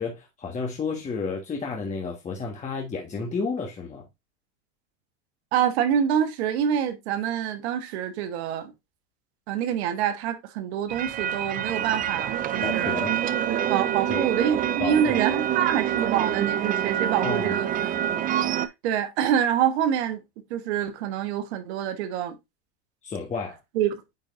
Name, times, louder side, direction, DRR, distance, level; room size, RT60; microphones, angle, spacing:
voice 1, 0.0-4.0 12.6-13.2 14.1-14.3 14.8-15.2 17.2-17.6 23.0-23.6, left 4 dB, 20° left, 1.5 m, -31 dB
voice 2, 5.5-8.7 9.5-12.9 13.7-22.4 23.7-24.0, right 9 dB, 75° right, 1.3 m, -26 dB
sound 1, 10.9-18.7, right 10 dB, 25° right, 0.5 m, -26 dB
9.4 x 4.0 x 2.6 m
supercardioid pair, 120°, 33 cm